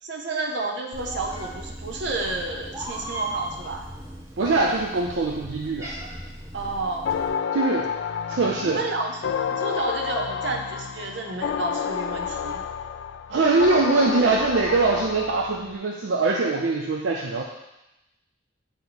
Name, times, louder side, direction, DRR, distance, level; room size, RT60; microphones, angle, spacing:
voice 1, 0.0-3.9 6.5-7.2 8.6-9.2 9.5-12.6, right 2 dB, 70° right, 2 dB, 0.9 m, -30 dB
Meow, 0.9-7.3, right 1 dB, 15° right, 0.8 m, -37 dB
voice 2, 4.4-5.9 7.5-7.9 8.3-8.8 13.3-17.4, right 3 dB, 85° right, 0 dB, 0.5 m, -22 dB
sound 1, 7.0-15.8, left 7 dB, 70° left, 0.3 m, -30 dB
8.9 x 3.0 x 3.9 m, 0.95 s
head